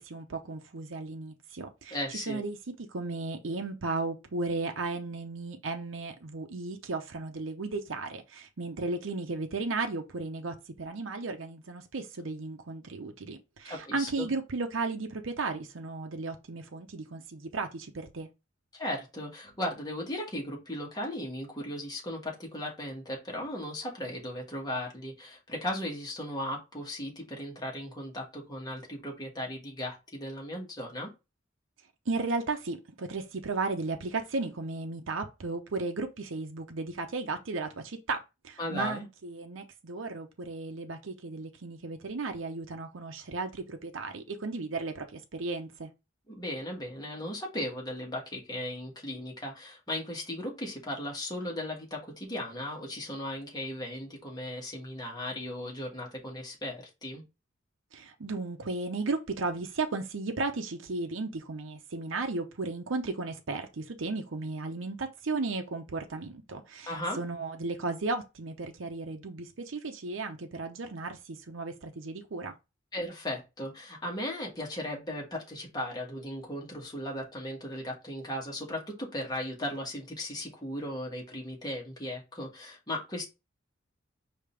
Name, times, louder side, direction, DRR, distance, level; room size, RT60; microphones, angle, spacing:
voice 1, 0.0-2.6 2.9-18.3 32.1-45.9 57.9-72.5, right 3 dB, 70° right, 0.7 m, -35 dB
voice 2, 1.9-2.4 13.6-14.3 18.7-31.1 38.6-39.0 46.3-57.2 66.9-67.2 72.9-83.3, left 1 dB, 20° left, 1.6 m, -37 dB
5.1 x 2.8 x 3.3 m
head